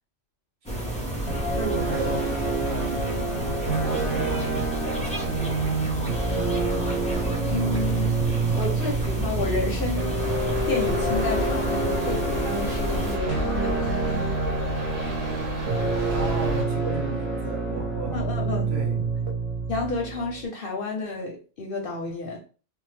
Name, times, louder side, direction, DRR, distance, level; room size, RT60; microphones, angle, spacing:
sound 1, 0.6-13.2, right 1 dB, 10° left, 0.3 m, -31 dB
voice 1, 0.7-1.2 1.6-3.3 3.7-5.8 16.1-18.2 18.7-19.0, right 3 dB, 60° right, 1.0 m, -35 dB
sound 2, 1.3-20.4, right 3 dB, 30° right, 0.7 m, -28 dB
voice 2, 7.5-8.2 8.5-10.2 10.7-14.7 18.1-18.7 19.7-22.4, left 2 dB, 55° left, 0.7 m, -31 dB
sound 3, 10.2-16.6, left 1 dB, 80° right, 1.3 m, -32 dB
2.9 x 2.1 x 3.2 m
omnidirectional pair, 1.3 m